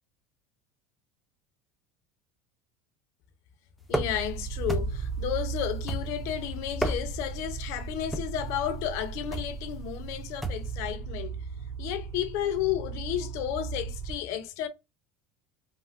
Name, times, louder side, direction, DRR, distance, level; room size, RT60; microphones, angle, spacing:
voice 1, 3.9-11.4 11.8-14.7, left 11 dB, 60° left, 0.5 m, -32 dB
sound 1, 3.9-4.3 4.7-5.2 5.9-6.3 6.7-7.3 8.1-8.4 9.3-9.6 10.4-10.7, right 1 dB, ahead, 0.5 m, -32 dB
sound 2, 3.9-14.2, right 6 dB, 75° right, 0.7 m, -37 dB
3.4 x 2.1 x 2.5 m
supercardioid pair, 130°, 6 cm